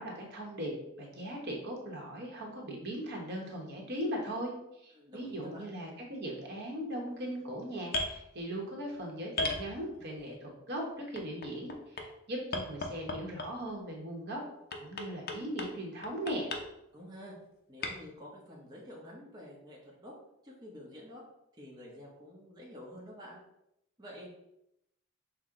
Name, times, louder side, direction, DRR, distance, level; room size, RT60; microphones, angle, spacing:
voice 1, 0.0-14.4 14.8-16.5, equal, 50° right, 0 dB, 1.0 m, -39 dB
voice 2, 4.9-5.7 16.9-17.3 17.7-20.2 20.4-21.2 21.6-23.4 24.0-24.3, equal, 20° right, -4 dB, 0.7 m, -49 dB
sound 1, 7.9-8.2 9.4-10.2 11.2-12.1 12.5-13.7 14.7-15.7 16.0-16.6 17.8-17.9, left 2 dB, 45° left, 0.6 m, -35 dB
5.9 x 2.1 x 3.6 m, 0.82 s
head